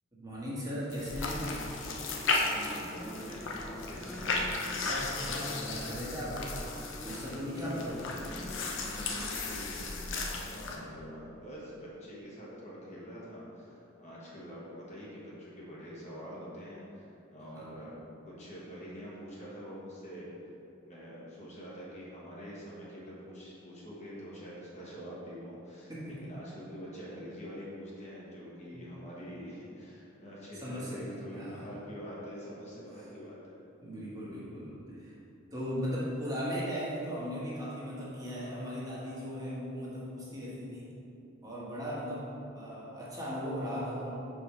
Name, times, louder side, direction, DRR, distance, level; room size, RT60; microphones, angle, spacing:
voice 1, 0.1-1.5 4.8-6.4 7.0-8.0 17.5-17.7 25.9-26.2 28.7-28.8 30.6-31.0 31.3-31.7 33.8-35.1 35.5-40.9 41.4-44.1, equal, 20° right, -8 dB, 1.4 m, -37 dB
sound 1, 0.9-10.8, left 3 dB, 65° left, 0.7 m, -35 dB
sound 2, 1.2-9.2, left 1 dB, 5° left, 0.3 m, -46 dB
voice 2, 2.4-4.3 8.8-17.9 18.2-20.5 20.9-33.6 34.3-34.5, equal, 35° left, -7 dB, 1.4 m, -45 dB
4.9 x 4.5 x 5.6 m, 2.8 s
head